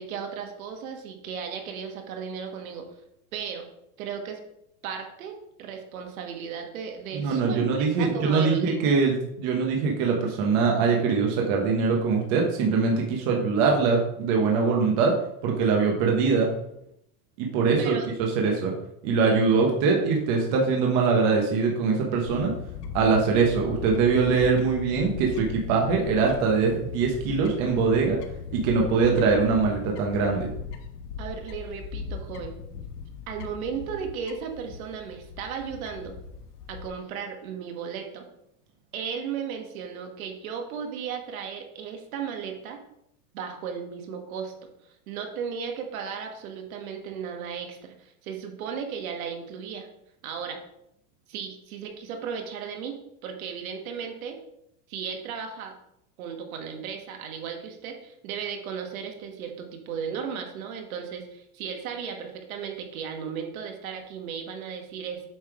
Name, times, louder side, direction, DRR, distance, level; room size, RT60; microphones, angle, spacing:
voice 1, 0.0-2.8 3.3-3.7 4.0-4.4 4.8-9.0 17.8-18.1 31.2-32.6 33.3-36.2 36.7-38.3 38.9-42.8 43.3-44.7 45.1-49.9 50.2-50.6 51.3-54.4 54.9-55.7 56.2-65.3, right 7 dB, 60° right, 3 dB, 1.3 m, -35 dB
voice 2, 7.1-15.2 15.4-16.5 17.4-18.0 18.4-18.7 19.0-22.5 22.9-28.2 28.5-30.5, right 4 dB, 35° right, 0 dB, 0.9 m, -23 dB
Fowl / Bird, 22.3-36.9, left 6 dB, 85° left, 1.1 m, -39 dB
7.4 x 3.2 x 4.8 m, 0.78 s
supercardioid pair, 160°, 46 cm